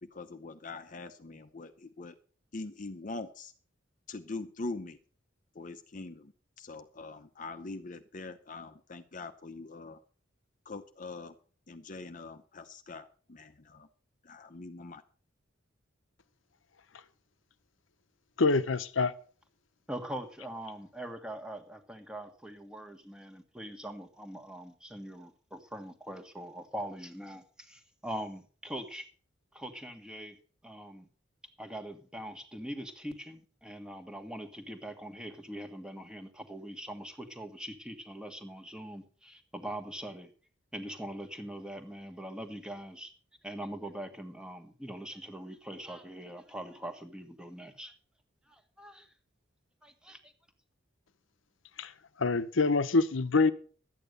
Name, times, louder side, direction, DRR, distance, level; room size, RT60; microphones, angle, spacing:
voice 1, 0.0-2.2 2.5-3.5 4.1-5.0 5.5-6.3 6.6-10.0 10.7-11.3 11.7-13.9 14.2-15.0, left 3 dB, 40° left, 0.7 m, -43 dB
voice 2, 18.4-19.1 51.8-51.9 52.2-53.5, left 3 dB, 75° left, 0.8 m, -25 dB
voice 3, 19.9-29.1 29.5-30.4 30.6-31.1 31.6-40.3 40.7-43.1 43.4-47.9 48.5-49.1 49.8-50.3, right 1 dB, 5° right, 1.5 m, -42 dB
12.0 x 9.1 x 6.7 m
head